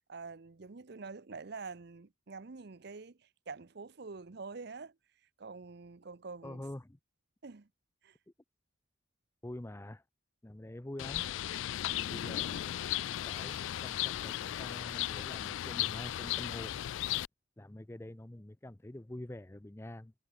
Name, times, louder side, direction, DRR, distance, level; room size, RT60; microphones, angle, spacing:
voice 1, 0.1-4.9 5.4-6.6 7.4-7.7 8.0-8.2 11.9-12.6, right 4 dB, 60° right, 0.7 m, -47 dB
voice 2, 6.4-7.0 9.4-10.0 10.4-11.3 12.1-12.8 13.3-16.8 17.6-20.1, left 1 dB, 15° left, 0.5 m, -46 dB
Bird, 11.0-17.3, left 13 dB, 80° left, 0.3 m, -36 dB
head